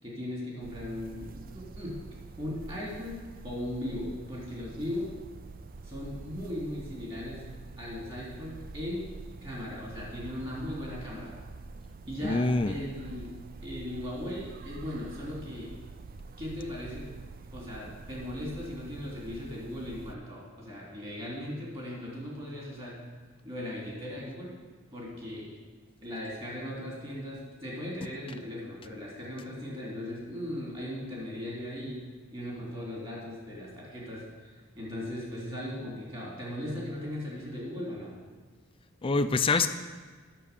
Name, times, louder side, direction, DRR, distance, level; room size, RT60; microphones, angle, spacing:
voice 1, 0.0-2.0 2.4-5.1 5.8-7.4 7.8-9.1 9.4-11.3 12.1-13.3 13.6-15.7 16.4-17.1 17.5-23.0 23.4-24.5 24.9-25.5 26.0-32.0 32.3-38.1, left 1 dB, 25° right, -4 dB, 3.0 m, -38 dB
sound 1, 0.6-20.1, right 3 dB, 45° right, 0.4 m, -46 dB
voice 2, 12.2-12.7 39.0-39.7, left 3 dB, 25° left, 10 dB, 0.4 m, -25 dB
9.8 x 6.3 x 6.8 m, 1.4 s
head